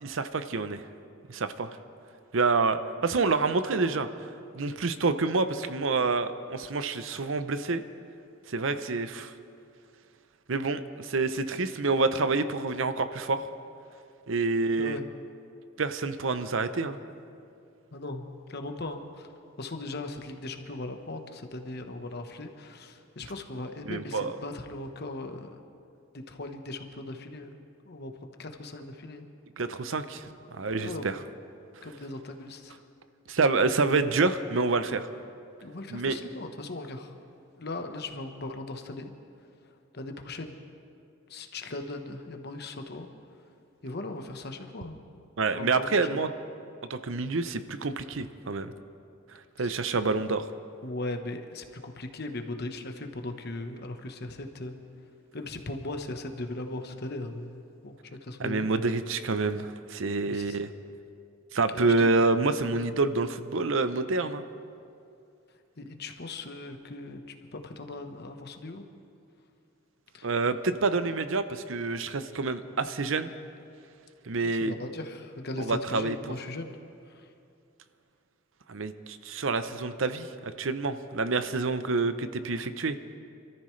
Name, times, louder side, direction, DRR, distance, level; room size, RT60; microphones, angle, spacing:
voice 1, 0.0-0.8 1.3-1.8 2.3-4.1 4.5-7.8 8.5-9.3 10.5-13.5 14.3-15.0 15.8-17.0 23.9-24.4 29.6-31.2 33.3-35.1 35.9-36.2 45.4-46.3 46.9-48.7 49.6-50.5 58.4-60.7 61.5-64.4 70.2-73.3 74.3-74.7 75.6-76.3 78.7-83.0, right 3 dB, 65° right, 11 dB, 0.7 m, -27 dB
voice 2, 14.6-15.0 17.9-19.3 19.6-25.6 26.1-27.5 27.9-28.1 28.4-29.3 30.8-31.1 31.8-32.8 35.6-37.1 37.6-39.1 39.9-40.6 41.3-43.1 43.8-45.2 45.5-45.9 49.6-49.7 50.8-54.8 55.3-58.0 58.2-58.7 60.3-60.6 61.7-62.1 65.8-67.2 67.5-68.8 70.1-70.3 74.3-76.7 77.1-77.3, left 2 dB, 50° left, 5 dB, 1.1 m, -38 dB
27.0 x 13.5 x 3.2 m, 2.5 s
head